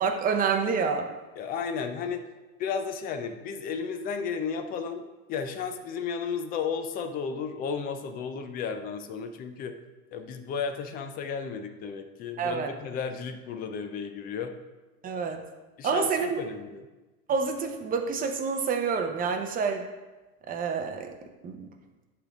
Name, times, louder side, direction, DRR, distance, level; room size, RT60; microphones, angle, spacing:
voice 1, 0.0-1.1 12.4-12.7 15.0-15.4 15.8-16.4 17.3-19.9 20.5-21.1 21.4-21.7, right 5 dB, 20° right, 4 dB, 0.7 m, -28 dB
voice 2, 1.4-2.3 2.6-9.8 10.1-14.6 15.8-16.9, left 6 dB, 20° left, 8 dB, 0.4 m, -33 dB
11.0 x 3.8 x 3.5 m, 1.2 s
hypercardioid pair, 115°, 44 cm